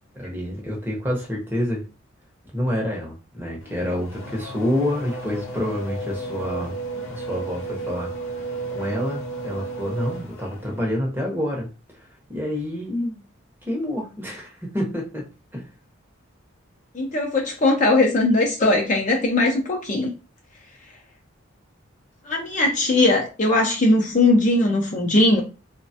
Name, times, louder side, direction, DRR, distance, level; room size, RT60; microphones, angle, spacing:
voice 1, 0.1-1.8 2.5-6.7 7.1-8.1 8.7-11.7 12.0-13.2 13.7-15.7, left 1 dB, 10° right, 0.7 m, -28 dB
Race car auto racing / Accelerating revving vroom, 3.6-10.9, right 3 dB, 80° left, 0.6 m, -33 dB
voice 2, 16.9-20.1 22.3-25.4, left 2 dB, 35° left, 0.5 m, -19 dB
3.1 x 2.1 x 2.7 m
head